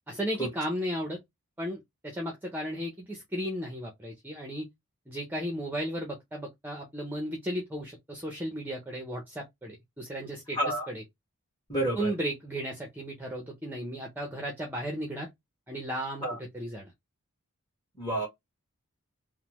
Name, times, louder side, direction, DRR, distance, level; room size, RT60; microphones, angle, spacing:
voice 1, 0.1-1.2 1.6-4.7 5.1-10.6 10.9-11.0 12.0-15.3 15.7-16.2 16.5-16.9, equal, 10° right, 0.6 m, -35 dB
voice 2, 10.6-10.9 11.7-12.1 16.2-16.4 18.0-18.3, right 1 dB, 15° left, 1.4 m, -29 dB
3.1 x 2.0 x 2.9 m
head